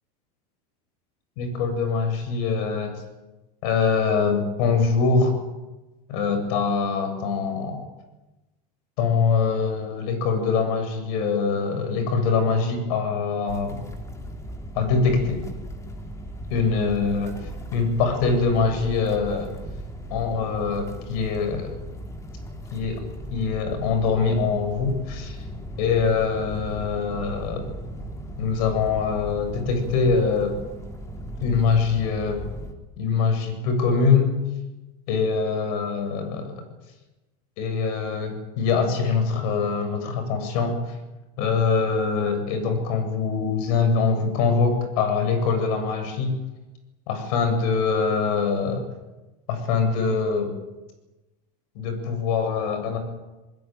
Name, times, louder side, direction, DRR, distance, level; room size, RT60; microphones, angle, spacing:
voice 1, 1.4-3.0 3.6-5.3 6.1-7.9 9.0-13.8 14.7-15.4 16.5-19.5 20.1-21.7 22.7-23.0 23.3-25.4 25.8-27.7 28.4-30.6 31.4-32.4 33.0-34.3 35.1-36.6 37.6-41.0 41.4-46.4 47.1-48.9 49.5-50.5 51.7-53.0, left 5 dB, 65° left, 7 dB, 7.7 m, -23 dB
sound 1, 13.5-32.7, equal, 15° left, 3.0 m, -37 dB
22.0 x 21.5 x 9.3 m, 1.1 s
supercardioid pair, 150°, 21 cm